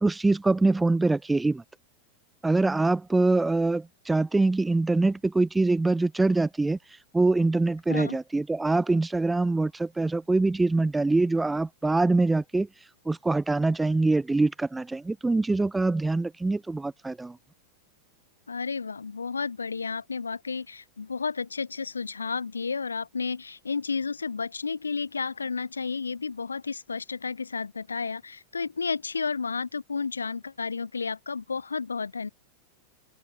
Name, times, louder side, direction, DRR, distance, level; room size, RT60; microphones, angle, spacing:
voice 1, 0.0-1.6 2.4-6.8 7.1-12.7 13.1-17.4, right 3 dB, 10° right, 0.4 m, -24 dB
voice 2, 7.9-8.2 18.5-32.3, left 5 dB, 75° left, 1.1 m, -32 dB
figure-of-eight pair, 90°, 0 cm